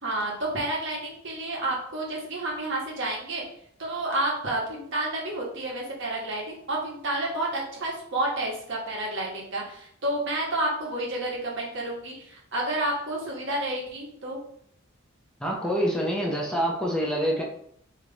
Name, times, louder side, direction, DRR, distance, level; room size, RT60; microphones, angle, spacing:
voice 1, 0.0-3.4 3.8-14.4, right 1 dB, 65° right, -3 dB, 1.3 m, -30 dB
voice 2, 15.4-17.4, equal, 5° left, -2 dB, 0.7 m, -26 dB
3.5 x 3.2 x 4.0 m, 0.66 s
head